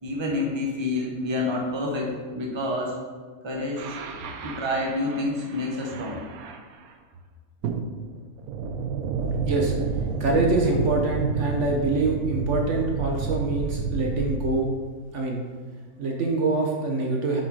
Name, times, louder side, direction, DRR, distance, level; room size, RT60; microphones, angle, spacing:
voice 1, 0.0-3.0 3.4-4.0 4.4-6.2, left 2 dB, 20° right, -1 dB, 1.0 m, -28 dB
sound 1, 3.8-6.9 7.6-14.4, right 5 dB, 80° right, 1.1 m, -30 dB
voice 2, 9.4-14.7 15.1-15.4 16.0-17.4, right 2 dB, 60° right, 0 dB, 1.2 m, -25 dB
7.3 x 4.9 x 4.8 m, 1.5 s
omnidirectional pair, 1.5 m